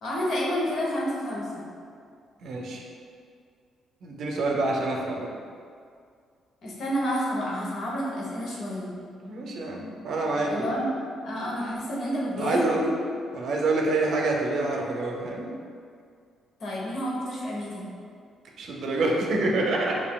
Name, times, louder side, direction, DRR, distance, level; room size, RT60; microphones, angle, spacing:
voice 1, 0.0-1.7 6.6-8.9 10.4-10.9 11.2-12.9 16.6-17.8, equal, 60° left, -4 dB, 1.0 m, -29 dB
voice 2, 2.4-2.8 4.0-5.3 9.2-10.7 12.4-12.8 13.3-15.5 18.6-20.0, right 2 dB, 65° right, -1 dB, 0.6 m, -27 dB
5.3 x 2.6 x 2.3 m, 2.2 s
cardioid pair, 90°, 0 cm